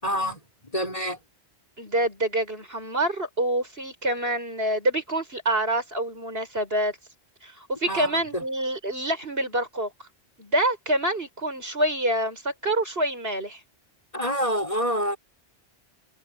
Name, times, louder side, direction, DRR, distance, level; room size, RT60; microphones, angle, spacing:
voice 1, 0.0-1.2 7.9-8.4 14.1-15.2, equal, 35° left, 6.3 m, -27 dB
voice 2, 1.8-6.9 7.4-9.9 10.4-13.6, right 1 dB, 65° right, 7.3 m, -26 dB
open air
omnidirectional pair, 1.1 m